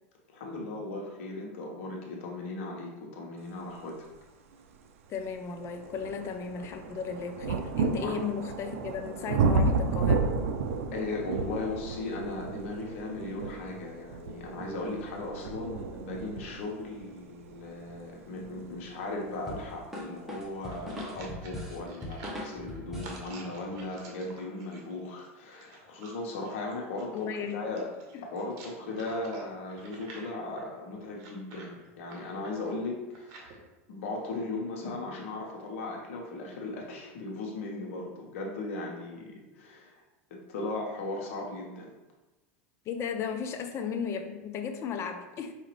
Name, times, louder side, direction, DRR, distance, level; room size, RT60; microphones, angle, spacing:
voice 1, 0.3-4.0 8.0-8.2 10.9-27.9 28.2-33.6 33.9-40.0 40.5-41.9, left 2 dB, 75° left, -1 dB, 1.1 m, -37 dB
sound 1, 4.5-4.6 5.2-19.9 20.8-20.9, right 4 dB, 80° right, 0.4 m, -32 dB
voice 2, 5.1-10.3 27.1-27.6 28.1-28.2 42.9-45.5, left 6 dB, 40° left, 6 dB, 0.6 m, -35 dB
sound 2, 19.5-23.3, left 1 dB, 5° right, 1.0 m, -40 dB
sound 3, 20.6-33.6, right 3 dB, 55° right, 1.0 m, -50 dB
5.0 x 2.7 x 3.1 m, 1.1 s
hypercardioid pair, 110°, 7 cm